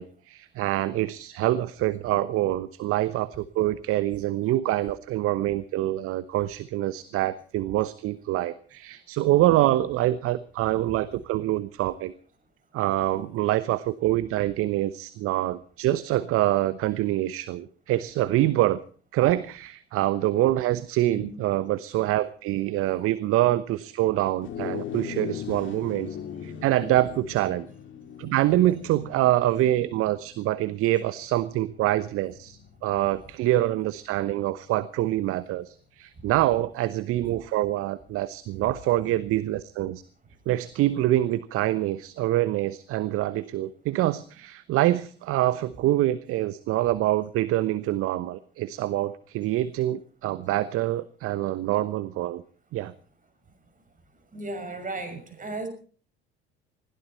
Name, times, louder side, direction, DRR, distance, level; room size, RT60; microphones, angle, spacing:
voice 1, 0.0-12.1 12.7-18.8 19.1-26.2 26.4-27.7 28.2-40.0 40.5-52.4 52.7-52.9, right 15 dB, 45° right, 16 dB, 1.0 m, -25 dB
sound 1, 24.4-34.0, left 8 dB, 40° left, 2.5 m, -40 dB
voice 2, 54.3-55.7, right 2 dB, 25° right, 9 dB, 6.2 m, -35 dB
21.0 x 16.0 x 4.3 m, 0.43 s
figure-of-eight pair, 65°, 31 cm